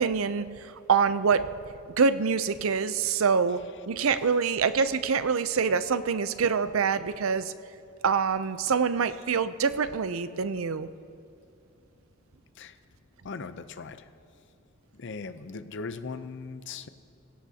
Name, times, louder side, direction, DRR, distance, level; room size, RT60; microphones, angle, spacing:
voice 1, 0.0-1.5 2.0-7.5 8.0-10.9, right 5 dB, 70° right, 13 dB, 0.6 m, -25 dB
voice 2, 13.2-14.1 14.9-16.9, left 4 dB, 60° left, 12 dB, 0.6 m, -39 dB
24.0 x 16.5 x 2.8 m, 2.4 s
head